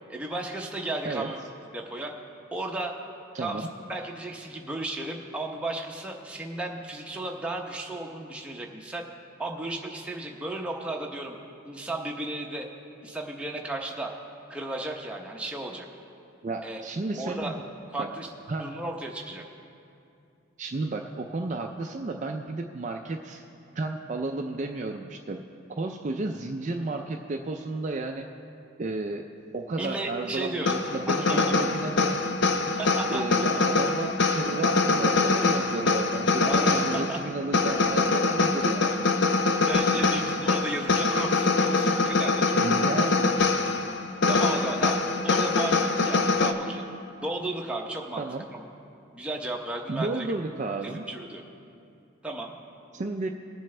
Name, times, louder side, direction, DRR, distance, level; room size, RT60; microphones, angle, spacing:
voice 1, 0.1-1.4 1.7-2.1 2.5-3.0 3.4-9.1 9.4-11.4 11.6-12.7 13.0-14.1 14.5-15.9 16.6-16.8 17.1-17.6 17.9-18.3 18.6-19.4 29.8-31.7 32.8-33.2 36.4-37.2 39.7-42.7 44.3-46.8 47.2-48.6 49.1-50.3 50.8-51.4 52.2-52.5, right 2 dB, 5° right, 0 dB, 0.7 m, -34 dB
voice 2, 3.3-3.7 16.4-17.6 18.0-18.1 18.5-18.7 20.6-23.4 23.8-25.4 25.8-28.3 28.8-29.3 29.5-32.2 32.7-32.8 33.1-39.0 42.6-43.3 48.2-48.5 49.9-51.0 52.9-53.3, right 3 dB, 35° right, 3 dB, 0.4 m, -32 dB
sound 1, 30.7-46.5, left 3 dB, 55° left, 0.6 m, -24 dB
20.5 x 7.5 x 3.3 m, 2.6 s
head